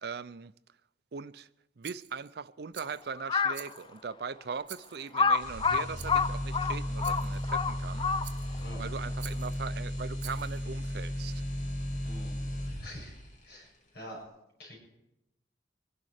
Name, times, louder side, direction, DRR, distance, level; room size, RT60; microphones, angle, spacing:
voice 1, 0.0-0.5 1.1-1.5 1.8-8.1 8.8-11.4, right 5 dB, 60° right, 0.5 m, -40 dB
Rattle, 1.8-2.3 2.7-3.1 3.5-4.1 4.6-5.2 6.0-6.3 7.0-7.4 8.2-8.7 9.2-9.6 10.2-10.6, right 12 dB, 85° right, 0.9 m, -48 dB
Crow, 3.2-3.7 4.3-4.4 5.1-8.6, left 5 dB, 30° left, 0.5 m, -28 dB
sound 1, 5.4-13.3, equal, 45° left, 2.4 m, -35 dB
voice 2, 12.0-12.4 12.8-13.1 13.4-14.2 14.6-14.8, equal, 60° left, 6.9 m, -46 dB
23.5 x 11.0 x 4.9 m
head